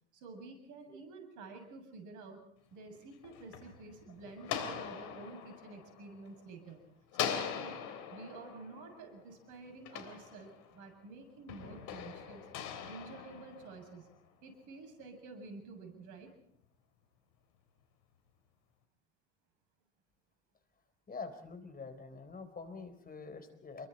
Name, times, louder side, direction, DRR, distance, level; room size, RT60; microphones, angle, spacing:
voice 1, 0.1-6.8 7.1-7.8 8.1-12.5 12.9-14.1 14.4-16.3, right 3 dB, 60° right, 6 dB, 7.5 m, -50 dB
sound 1, 3.0-6.7 7.1-10.9 11.5-14.1, left 8 dB, 60° left, 3.6 m, -42 dB
voice 2, 21.1-23.9, left 4 dB, 25° left, 9 dB, 4.0 m, -46 dB
28.5 x 23.0 x 4.3 m, 0.68 s
hypercardioid pair, 75°, 34 cm